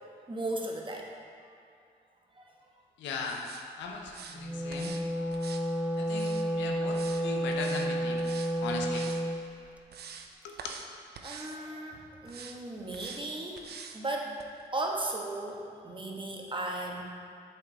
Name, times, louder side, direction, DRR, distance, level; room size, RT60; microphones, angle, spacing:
voice 1, 0.3-1.1 1.4-1.5 2.3-2.4 5.6-5.7 8.4-8.6 9.5-9.6 11.2-13.6 13.9-14.3 14.7-17.0, right 2 dB, 25° right, -1 dB, 1.3 m, -36 dB
voice 2, 3.0-3.4 3.8-4.9 6.0-8.3 8.6-9.1 10.4-10.6, left 4 dB, 90° left, 1 dB, 0.7 m, -38 dB
sound 1, 3.2-3.6 4.1-4.4 4.7-5.0 5.3-6.5 6.9-7.2 7.5-7.9 8.2-8.5 8.8-9.2 9.6-10.3 10.6-10.9 11.1-11.6 12.2-12.6 12.9-13.2 13.6-14.0 14.4-14.5, right 6 dB, 60° right, 0.6 m, -46 dB
Wind instrument woodwind instrument, 4.3-9.4, right 1 dB, 10° right, 0.7 m, -31 dB
7.5 x 4.5 x 4.5 m, 2.3 s
supercardioid pair, 50°, 18 cm